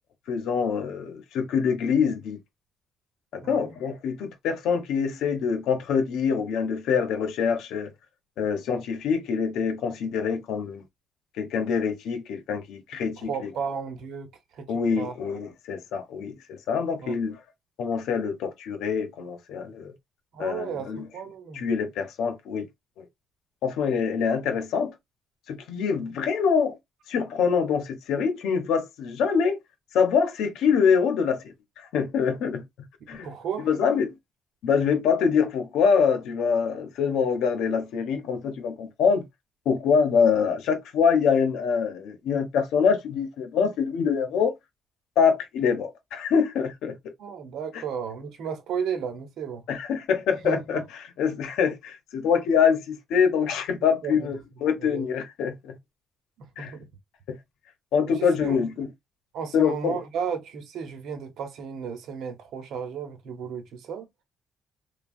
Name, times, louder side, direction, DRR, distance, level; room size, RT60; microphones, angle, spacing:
voice 1, 0.3-2.4 3.3-7.9 8.4-10.8 11.4-13.3 14.7-17.4 17.8-19.9 20.4-21.0 21.5-22.7 23.0-23.1 23.6-24.9 25.5-26.8 27.1-29.6 29.9-32.6 33.1-33.3 33.6-34.1 34.6-39.3 39.7-44.5 45.2-47.0 47.7-47.8 49.7-50.8 51.2-55.8 56.6-56.7 57.3-57.4 57.9-58.9 59.5-60.0, left 6 dB, 85° left, 0.7 m, -25 dB
voice 2, 3.4-3.7 13.0-15.2 17.0-17.1 20.3-21.7 33.1-33.7 47.2-49.6 50.4-50.8 54.0-54.3 54.8-55.1 56.4-56.9 58.1-58.7 59.3-64.1, right 7 dB, 80° right, 0.9 m, -34 dB
3.4 x 2.3 x 2.4 m
cardioid pair, 90°, 0 cm